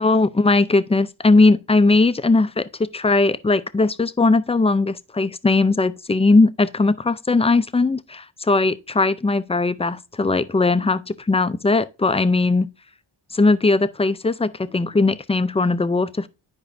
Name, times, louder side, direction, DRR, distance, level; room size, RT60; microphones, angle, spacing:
voice 1, 0.0-12.7 13.3-16.3, left 3 dB, 15° left, 0.4 m, -19 dB
10.5 x 4.8 x 2.6 m
cardioid pair, 55°, 48 cm